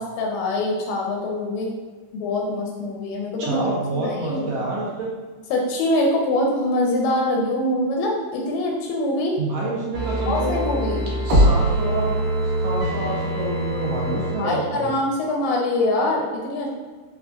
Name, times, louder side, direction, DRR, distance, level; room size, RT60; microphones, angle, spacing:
voice 1, 0.0-1.7 2.1-3.7 3.9-4.5 5.5-9.4 10.3-11.1 14.4-16.7, left 1 dB, 80° left, -1 dB, 1.7 m, -24 dB
voice 2, 3.4-5.1 9.4-10.6 11.2-12.1 12.6-14.9, right 2 dB, 75° right, -5 dB, 1.4 m, -27 dB
sound 1, 9.9-14.4 14.7-14.8, right 1 dB, 55° right, 1.7 m, -22 dB
5.5 x 2.4 x 2.3 m, 1.4 s
omnidirectional pair, 3.6 m